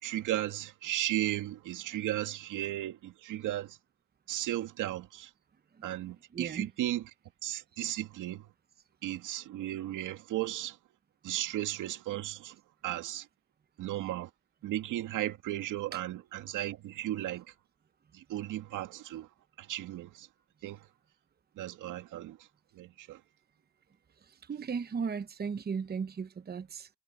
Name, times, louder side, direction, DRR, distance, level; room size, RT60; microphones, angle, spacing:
voice 1, 0.0-3.8 4.3-5.3 5.8-7.1 7.4-8.5 9.0-10.8 11.2-12.6 12.8-13.3 13.8-14.3 14.6-17.4 18.1-19.3 19.6-20.3 20.6-20.8 21.6-22.4 22.7-23.2, right 14 dB, 90° right, 2.2 m, -35 dB
voice 2, 6.3-6.7 15.9-16.0 24.5-26.9, right 6 dB, 30° right, 0.9 m, -36 dB
cardioid pair, 90°, 30 cm